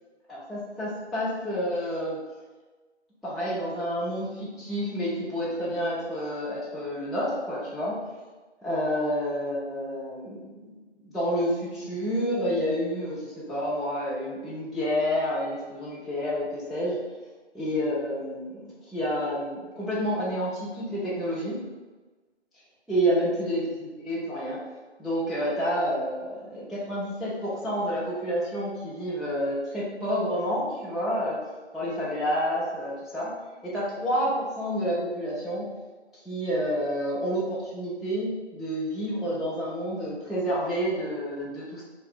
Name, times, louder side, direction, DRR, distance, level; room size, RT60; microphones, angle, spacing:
voice 1, 0.3-2.2 3.2-7.9 8.6-10.7 11.0-17.0 17.5-21.6 22.9-24.6 25.0-31.4 31.7-33.3 33.6-35.6 36.2-41.8, equal, ahead, -10 dB, 0.4 m, -29 dB
2.6 x 2.0 x 3.8 m, 1.3 s
figure-of-eight pair, 180°, 35 cm